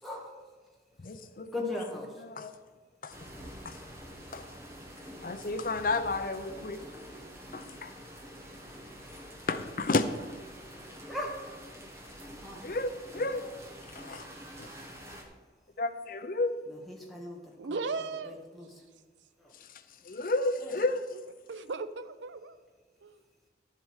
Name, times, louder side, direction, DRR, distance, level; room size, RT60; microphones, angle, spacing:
voice 1, 0.0-0.4 1.5-2.2 6.9-7.1 11.1-11.4 12.2-12.6 16.7-17.8 18.3-18.7 19.4-19.5 20.6-20.7, left 1 dB, ahead, 1.6 m, -39 dB
voice 2, 1.0-1.7 2.2-2.5 3.0-3.2 3.6-3.8 4.3-4.5 5.2-6.8 7.5-7.9 9.5-10.4 12.6-13.4 13.9-14.3 14.6-14.7 15.8-16.7 19.6-21.0, left 2 dB, 50° left, 0.6 m, -32 dB
sound 1, 3.1-15.2, equal, 15° right, 1.3 m, -47 dB
voice 3, 17.6-18.5 21.5-22.6 23.0-23.2, right 4 dB, 90° right, 0.6 m, -36 dB
12.0 x 7.6 x 4.8 m
head